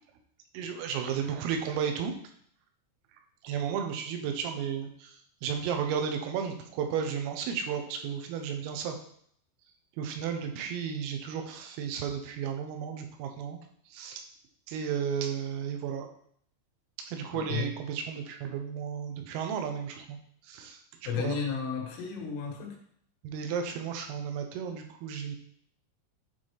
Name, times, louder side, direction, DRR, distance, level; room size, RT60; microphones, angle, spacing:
voice 1, 0.6-2.2 3.4-5.2 5.4-9.0 10.0-13.6 13.9-14.3 14.7-16.1 17.1-20.2 20.4-20.8 21.2-21.4 23.2-25.4, right 7 dB, 85° right, 4 dB, 3.5 m, -33 dB
voice 2, 17.3-17.7 21.1-22.8, left 6 dB, 75° left, 1 dB, 3.8 m, -33 dB
11.0 x 4.0 x 3.3 m, 0.64 s
omnidirectional pair, 6.0 m